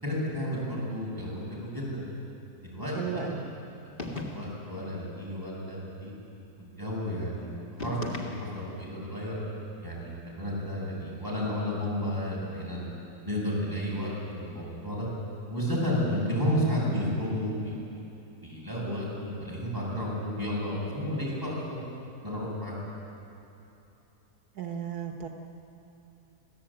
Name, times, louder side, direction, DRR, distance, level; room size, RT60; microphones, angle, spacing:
voice 1, 0.0-2.0 2.6-3.4 4.0-6.1 6.6-9.4 9.8-12.8 13.2-15.1 15.5-17.8 18.4-21.8 22.2-22.8, equal, 15° right, -6 dB, 7.8 m, -32 dB
voice 2, 3.0-3.4 24.6-25.3, right 7 dB, 80° right, 3 dB, 1.9 m, -34 dB
sound 1, 4.0-4.7 7.8-8.8, left 2 dB, 35° left, 2.1 m, -38 dB
27.0 x 16.0 x 8.9 m, 2.9 s
omnidirectional pair, 1.6 m